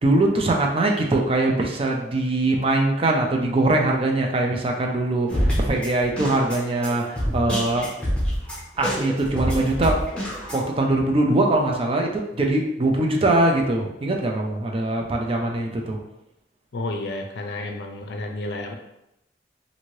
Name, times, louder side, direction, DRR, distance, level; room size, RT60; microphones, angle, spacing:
voice 1, 0.0-7.9 8.8-10.0 10.5-16.0, right 2 dB, 30° right, 0 dB, 0.4 m, -22 dB
sound 1, 5.3-10.6, equal, 5° left, 0.8 m, -26 dB
voice 2, 16.7-18.7, left 2 dB, 65° left, 3 dB, 0.5 m, -31 dB
2.7 x 2.6 x 3.1 m, 0.85 s
head